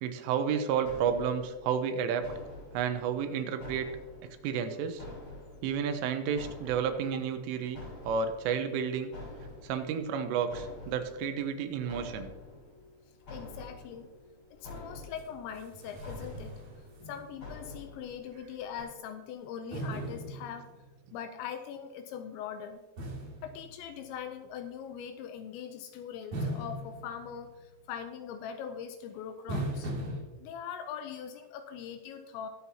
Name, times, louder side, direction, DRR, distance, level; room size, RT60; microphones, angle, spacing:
voice 1, 0.0-2.3 2.7-3.9 4.4-5.0 5.6-9.1 9.6-12.3, right 7 dB, 85° right, 8 dB, 3.4 m, -31 dB
sound 1, 0.8-18.8, left 2 dB, 35° left, 4.5 m, -48 dB
voice 2, 13.3-14.1 14.5-16.5 17.1-20.7 21.1-22.8 23.4-29.9 30.4-32.5, left 8 dB, 80° left, 8 dB, 2.7 m, -41 dB
sound 2, 15.2-15.3 15.6-17.6 17.9-18.0 19.7-21.1 23.0-24.4 26.3-27.8 29.5-30.2, right 1 dB, 45° right, 3.2 m, -39 dB
21.0 x 7.7 x 2.8 m, 1.2 s
omnidirectional pair, 5.6 m